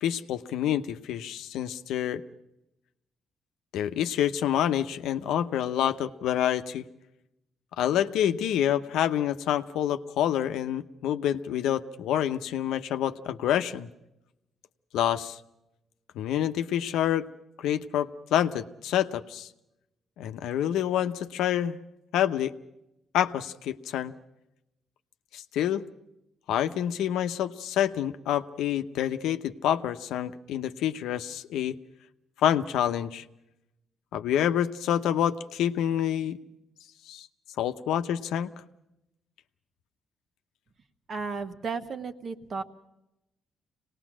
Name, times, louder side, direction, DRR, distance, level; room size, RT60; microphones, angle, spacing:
voice 1, 0.0-2.2 3.7-6.8 7.8-13.9 14.9-15.4 16.1-17.3 17.6-19.5 20.2-21.8 22.1-22.5 23.1-24.1 25.3-25.8 26.5-31.8 32.4-33.2 34.1-36.4 37.1-37.3 37.6-38.5, left 10 dB, 85° left, 9 dB, 0.8 m, -27 dB
voice 2, 41.1-42.6, right 4 dB, 50° right, 8 dB, 1.3 m, -34 dB
25.0 x 19.0 x 6.2 m, 0.88 s
cardioid pair, 90°, 0 cm